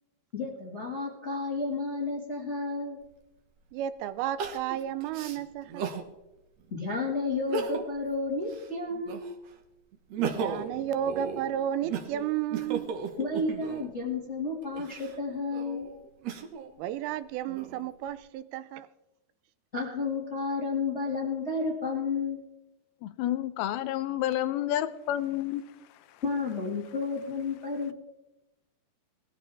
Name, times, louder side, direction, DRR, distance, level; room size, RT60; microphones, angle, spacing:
voice 1, 0.3-3.0 6.7-9.2 13.2-15.9 19.7-22.4 26.2-27.9, left 3 dB, 30° left, 1.4 m, -31 dB
Crying sobbing, 3.0-3.1 4.4-6.1 6.6-6.7 7.3-8.0 8.4-9.5 9.9-13.9 14.6-16.7 17.3-18.1, right 6 dB, 60° right, 1.8 m, -36 dB
voice 2, 3.7-5.9 10.2-12.9 16.8-18.9, right 10 dB, 80° right, 2.4 m, -32 dB
voice 3, 23.0-25.6, left 12 dB, 80° left, 2.6 m, -29 dB
20.5 x 14.5 x 3.5 m
omnidirectional pair, 4.5 m